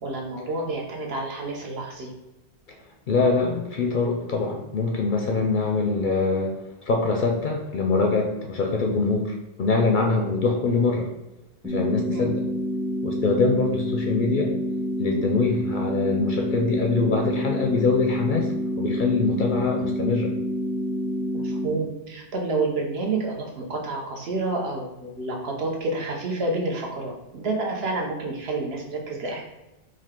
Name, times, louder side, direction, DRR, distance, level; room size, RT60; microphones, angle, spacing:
voice 1, 0.0-2.1 12.1-12.3 21.3-29.4, right 2 dB, 65° right, -1 dB, 1.0 m, -29 dB
voice 2, 3.1-6.5 6.9-11.1 11.6-12.4 13.0-14.5 15.0-18.5 18.8-20.3, left 3 dB, 60° left, 1 dB, 0.6 m, -23 dB
sound 1, 11.6-21.7, equal, ahead, 0.5 m, -28 dB
4.9 x 2.2 x 3.6 m, 0.98 s
omnidirectional pair, 1.2 m